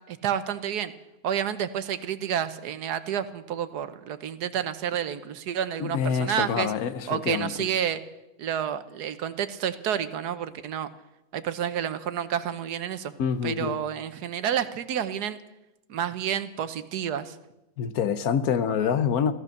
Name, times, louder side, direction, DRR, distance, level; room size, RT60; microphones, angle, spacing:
voice 1, 0.1-0.9 1.2-6.7 7.1-8.0 8.4-10.9 11.3-13.1 13.4-15.4 15.9-17.4, right 9 dB, 80° right, 12 dB, 1.4 m, -29 dB
voice 2, 5.8-7.5 13.2-13.8 17.8-19.3, left 7 dB, 70° left, 12 dB, 1.3 m, -26 dB
15.0 x 14.5 x 6.5 m, 0.94 s
omnidirectional pair, 1.7 m